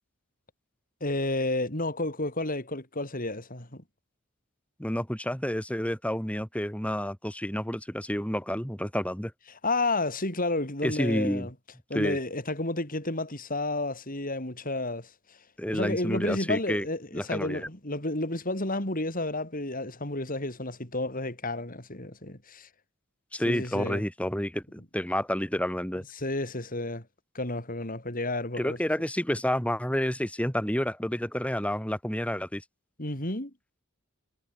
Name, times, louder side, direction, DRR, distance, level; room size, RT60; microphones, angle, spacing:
voice 1, 1.0-3.8 9.5-11.5 11.9-15.4 15.7-22.7 23.5-24.0 26.2-27.1 27.3-28.8 33.0-33.5, left 2 dB, 40° left, 5.5 m, -31 dB
voice 2, 4.8-9.3 10.8-11.5 11.9-12.2 15.6-16.8 17.1-17.7 23.3-26.0 28.6-32.6, equal, 5° left, 4.2 m, -29 dB
head